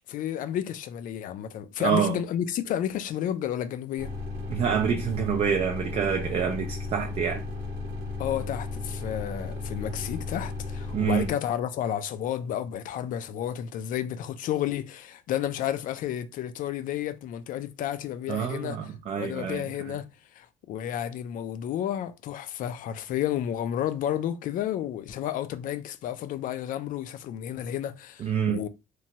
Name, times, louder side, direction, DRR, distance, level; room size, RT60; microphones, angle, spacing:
voice 1, 0.1-4.1 8.2-18.9 19.2-20.1 20.3-28.7, left 10 dB, 60° left, 0.4 m, -31 dB
voice 2, 1.8-2.2 4.5-7.4 10.9-11.3 18.3-19.6 28.2-28.6, right 7 dB, 40° right, 0.4 m, -27 dB
sound 1, 4.0-11.3, left 3 dB, 85° right, 0.7 m, -34 dB
2.9 x 2.2 x 2.8 m
cardioid pair, 135°, 16 cm